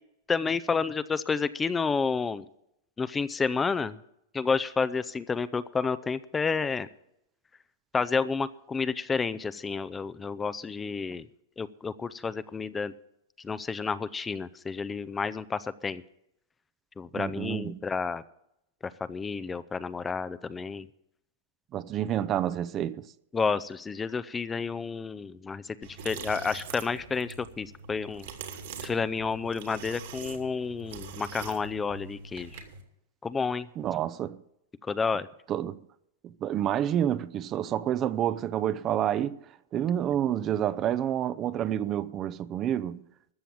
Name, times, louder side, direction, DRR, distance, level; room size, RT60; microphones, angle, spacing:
voice 1, 0.3-2.5 3.0-4.0 4.3-6.9 7.9-11.3 11.6-12.9 13.4-16.0 17.0-18.2 18.8-20.9 23.3-25.8 26.0-28.3 28.8-32.6 33.2-33.7 34.8-35.3, left 5 dB, 15° left, 0.5 m, -30 dB
voice 2, 17.1-17.8 21.7-23.0 33.8-34.4 35.5-35.8 36.2-39.4 39.7-43.0, right 10 dB, 30° right, 0.5 m, -29 dB
sound 1, 25.8-32.8, right 5 dB, 70° right, 2.5 m, -43 dB
13.5 x 7.0 x 8.7 m
hypercardioid pair, 125°, 0 cm